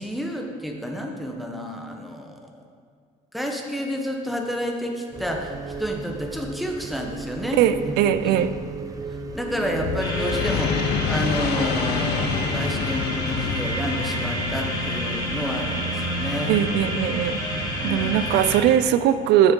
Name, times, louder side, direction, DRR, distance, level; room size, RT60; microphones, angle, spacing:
voice 1, 0.0-2.5 3.3-5.5 5.8-7.6 7.8-7.9 8.2-8.4 9.3-16.7 17.8-18.2, equal, ahead, 1 dB, 0.9 m, -30 dB
sound 1, 5.1-13.2, right 3 dB, 20° right, 0.6 m, -35 dB
voice 2, 7.6-8.5 16.5-17.4 17.8-19.5, right 10 dB, 85° right, 12 dB, 0.4 m, -20 dB
sound 2, 9.3-15.4, left 7 dB, 70° left, 0.5 m, -28 dB
sound 3, 10.0-18.6, equal, 20° left, 1.5 m, -29 dB
7.1 x 6.4 x 3.7 m, 2.1 s
cardioid pair, 110°, 17 cm